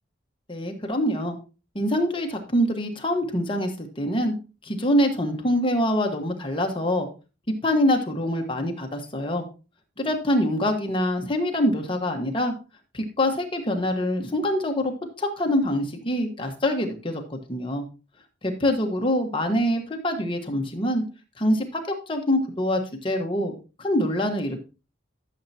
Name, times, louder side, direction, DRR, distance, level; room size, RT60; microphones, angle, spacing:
voice 1, 0.5-1.3 1.7-4.3 4.6-7.1 7.6-9.4 10.0-12.5 12.9-14.9 15.2-17.8 18.4-21.0 21.4-23.5 23.8-24.6, left 1 dB, 30° left, 3 dB, 1.4 m, -25 dB
12.5 x 7.3 x 2.8 m, 0.32 s
head